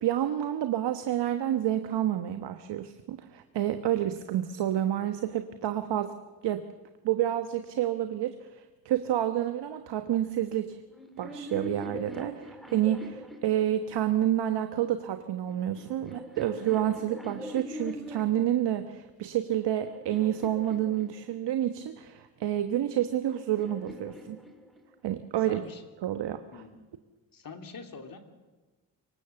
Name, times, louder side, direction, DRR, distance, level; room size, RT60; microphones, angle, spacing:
voice 1, 0.0-6.1 6.4-6.7 7.0-10.8 11.2-24.4 25.0-25.6 26.0-26.6, right 12 dB, 70° right, 9 dB, 1.3 m, -29 dB
sound 1, 10.9-14.3 15.2-18.6 19.2-21.7 22.7-25.1, left 1 dB, ahead, 4.6 m, -43 dB
voice 2, 25.5-25.8 26.5-26.8 27.3-28.2, left 4 dB, 50° left, 5 dB, 3.1 m, -44 dB
24.5 x 24.0 x 7.0 m, 1.2 s
supercardioid pair, 55°, 43 cm